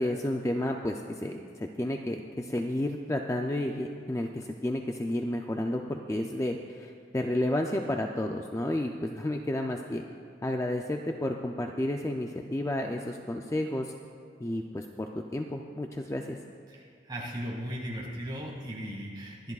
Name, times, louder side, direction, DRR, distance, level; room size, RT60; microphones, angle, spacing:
voice 1, 0.0-10.0 10.4-13.9 14.4-16.4, left 1 dB, 15° left, 2 dB, 0.4 m, -31 dB
voice 2, 16.7-19.5, equal, 25° right, -3 dB, 2.2 m, -37 dB
24.0 x 10.5 x 2.4 m, 2.2 s
head